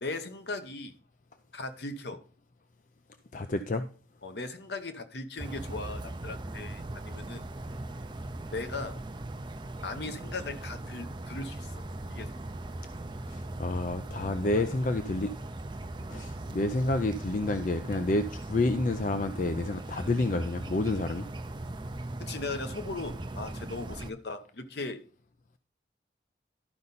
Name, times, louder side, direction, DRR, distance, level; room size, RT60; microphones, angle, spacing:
voice 1, 0.0-0.9 1.5-2.2 4.2-7.4 8.5-9.0 9.8-11.7 12.1-12.4 14.4-14.5 16.1-16.3 22.2-25.0, left 3 dB, 65° left, 8 dB, 1.0 m, -38 dB
voice 2, 3.3-3.9 13.3-15.3 16.1-21.3, left 2 dB, 45° left, 9 dB, 0.5 m, -29 dB
sound 1, 5.4-24.1, right 2 dB, 25° right, 0.5 m, -39 dB
12.5 x 5.4 x 4.1 m, 0.39 s
head